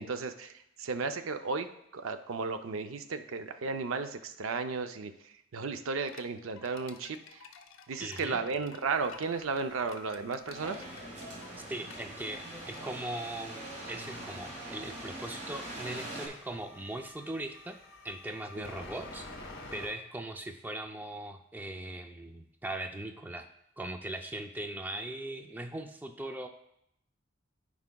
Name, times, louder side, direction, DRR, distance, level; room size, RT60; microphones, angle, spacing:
voice 1, 0.0-7.4 7.9-10.8 18.6-18.7, right 4 dB, 90° right, 8 dB, 0.5 m, -34 dB
sound 1, 6.0-13.2, left 5 dB, 85° left, 0.6 m, -53 dB
voice 2, 8.0-8.4 11.7-17.8 18.0-23.5 23.8-26.5, right 1 dB, 10° right, 6 dB, 0.3 m, -40 dB
sound 2, 8.9-19.9, left 2 dB, 55° left, 1.1 m, -52 dB
sound 3, 10.5-16.3, right 1 dB, 35° right, 1.9 m, -43 dB
13.0 x 4.8 x 2.3 m, 0.78 s
head